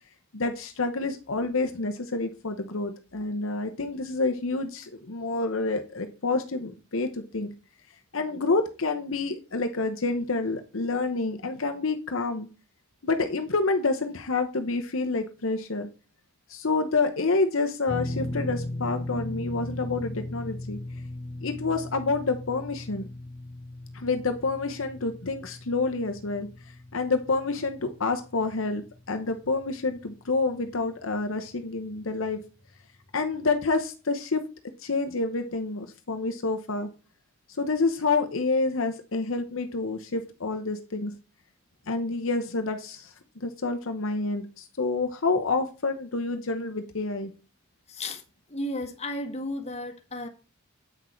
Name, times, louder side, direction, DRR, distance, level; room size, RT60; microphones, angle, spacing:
voice 1, 0.3-7.5 8.1-12.5 13.0-15.9 16.5-20.8 21.4-23.1 23.9-26.5 26.9-32.4 33.1-34.4 34.8-36.9 37.6-41.1 41.9-43.1 43.4-47.3, left 3 dB, 70° left, 0.9 m, -28 dB
sound 1, 17.9-30.1 30.4-30.6 32.3-32.4, left 1 dB, 10° left, 2.5 m, -38 dB
voice 2, 47.9-48.2 48.5-50.3, left 1 dB, 30° left, 1.6 m, -33 dB
8.8 x 6.3 x 4.4 m
head